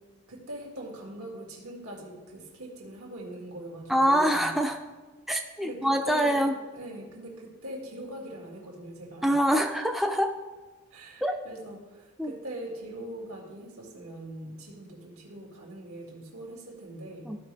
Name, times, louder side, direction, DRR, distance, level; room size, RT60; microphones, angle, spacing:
voice 1, 0.3-4.5 5.6-6.4 6.7-9.4 10.9-17.3, right 1 dB, 85° right, -1 dB, 2.2 m, -42 dB
voice 2, 3.9-4.8 5.3-6.5 9.2-10.3 11.2-11.4 12.2-12.3 17.3-17.4, equal, ahead, 3 dB, 0.4 m, -25 dB
14.5 x 5.0 x 3.4 m, 1.2 s
head